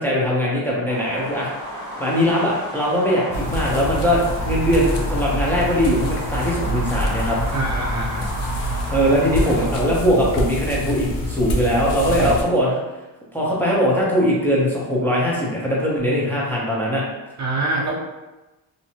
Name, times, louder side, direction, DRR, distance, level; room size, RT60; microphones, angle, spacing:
voice 1, 0.0-1.5 2.0-7.4 8.6-12.8 13.3-17.0, equal, 5° left, -5 dB, 0.6 m, -21 dB
sound 1, 0.9-9.7, equal, 50° left, 1.4 m, -33 dB
sound 2, 3.3-12.4, equal, 75° left, 0.6 m, -26 dB
voice 2, 7.5-8.3 12.2-12.4 17.4-17.9, right 2 dB, 40° right, -2 dB, 0.6 m, -25 dB
2.7 x 2.2 x 2.7 m, 1.1 s
cardioid pair, 75°, 42 cm